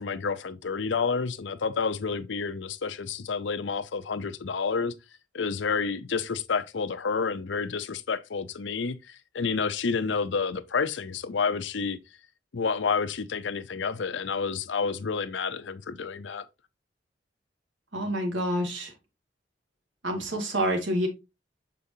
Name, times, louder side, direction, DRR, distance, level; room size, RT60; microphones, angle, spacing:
voice 1, 0.0-4.9 5.3-12.0 12.5-16.4, left 5 dB, 80° left, 0.6 m, -29 dB
voice 2, 17.9-18.9 20.0-21.1, right 1 dB, 85° right, 2.2 m, -27 dB
6.8 x 5.1 x 2.7 m
head